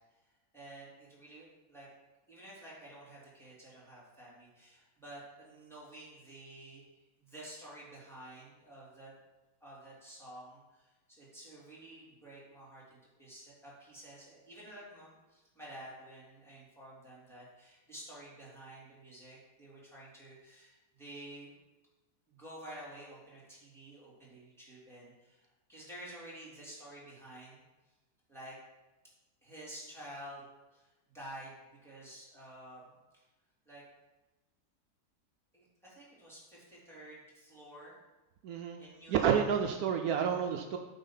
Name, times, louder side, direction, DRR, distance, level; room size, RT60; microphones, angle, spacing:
voice 1, 0.5-1.9 2.3-9.1 9.6-21.5 22.3-27.6 28.3-28.6 29.4-30.4 30.7-30.9 31.1-31.5 31.8-33.2 33.7-33.8 35.5-38.0 38.8-39.4, right 1 dB, ahead, -8 dB, 2.8 m, -51 dB
voice 2, 38.4-38.8 39.1-40.8, right 7 dB, 75° right, 4 dB, 1.1 m, -29 dB
9.2 x 4.0 x 5.6 m, 1.1 s
omnidirectional pair, 1.6 m